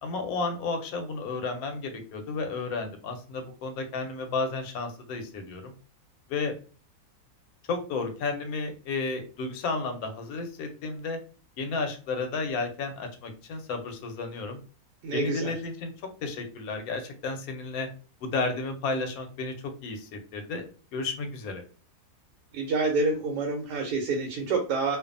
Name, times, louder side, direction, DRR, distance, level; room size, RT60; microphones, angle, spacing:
voice 1, 0.0-5.7 6.3-6.5 7.7-11.2 11.6-14.6 15.1-15.9 16.2-17.9 18.2-20.6 20.9-21.6, left 3 dB, 75° left, 5 dB, 1.0 m, -32 dB
voice 2, 15.0-15.5 22.5-25.0, right 3 dB, 85° right, 2 dB, 1.1 m, -27 dB
2.5 x 2.3 x 2.5 m, 0.38 s
omnidirectional pair, 1.7 m